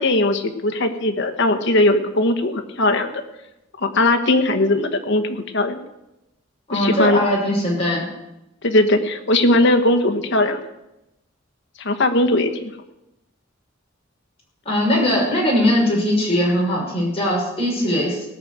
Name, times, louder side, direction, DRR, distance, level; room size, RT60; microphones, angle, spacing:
voice 1, 0.0-3.2 3.8-5.8 6.7-7.2 8.6-10.6 11.8-12.7, left 2 dB, 65° left, 6 dB, 1.3 m, -19 dB
voice 2, 6.7-8.0 14.7-18.2, equal, 30° left, -3 dB, 5.7 m, -20 dB
17.5 x 6.4 x 8.1 m, 0.92 s
head